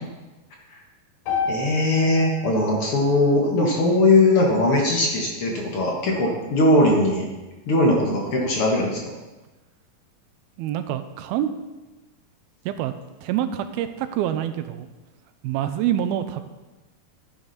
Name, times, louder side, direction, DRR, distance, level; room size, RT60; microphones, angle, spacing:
sound 1, 1.3-5.4, left 5 dB, 90° left, 4.7 m, -33 dB
voice 1, 1.5-7.3 7.7-9.0, left 2 dB, 55° left, 0 dB, 1.5 m, -20 dB
voice 2, 10.6-11.5 12.7-12.9 13.2-14.9 15.4-16.4, right 11 dB, 85° right, 10 dB, 2.5 m, -26 dB
11.5 x 10.0 x 4.1 m, 1.1 s
omnidirectional pair, 4.4 m